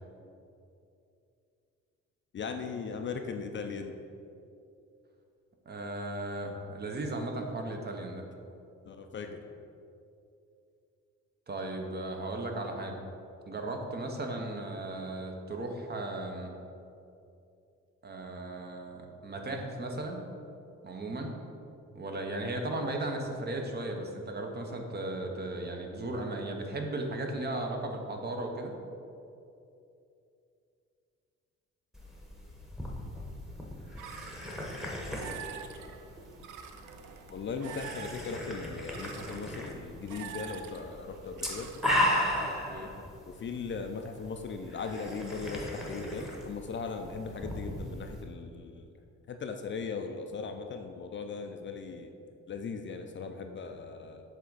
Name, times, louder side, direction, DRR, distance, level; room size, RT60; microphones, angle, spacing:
voice 1, 2.3-3.9 8.8-9.4 37.3-41.7 43.3-48.8 49.3-52.1 52.5-54.2, left 5 dB, 40° left, 5 dB, 0.4 m, -38 dB
voice 2, 5.7-8.2 11.5-13.0 13.5-16.5 18.0-20.2 20.8-21.4 21.9-28.7 42.4-42.9, right 2 dB, 35° right, 3 dB, 0.8 m, -36 dB
sound 1, 31.9-48.2, equal, ahead, 1.1 m, -37 dB
sound 2, 34.0-42.2, right 6 dB, 80° right, 0.5 m, -47 dB
7.5 x 3.5 x 4.0 m, 2.6 s
cardioid pair, 90°, 30 cm